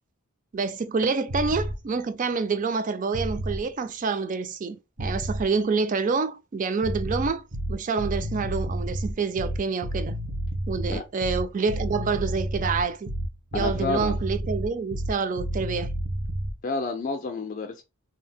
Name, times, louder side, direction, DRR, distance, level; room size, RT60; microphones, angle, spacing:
voice 1, 0.5-7.4 7.7-10.2 10.7-13.1 13.5-15.9, right 4 dB, 40° right, 0.4 m, -27 dB
sound 1, 1.3-1.8 3.1-3.7 5.0-5.5 6.8-16.6, right 1 dB, 70° right, 0.8 m, -30 dB
voice 2, 13.5-14.2 16.6-17.8, left 4 dB, 40° left, 0.4 m, -30 dB
2.7 x 2.0 x 3.4 m
head